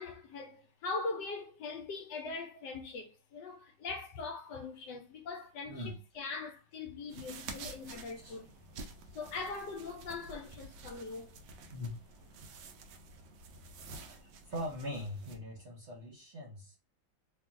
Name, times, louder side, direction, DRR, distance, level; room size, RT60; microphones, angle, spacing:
voice 1, 0.0-8.5 9.1-11.3, left 4 dB, 70° left, 1.2 m, -41 dB
sound 1, 7.1-15.4, right 3 dB, 80° right, 1.3 m, -50 dB
voice 2, 14.5-16.8, left 1 dB, 45° right, 1.0 m, -41 dB
3.4 x 2.4 x 2.5 m
omnidirectional pair, 2.0 m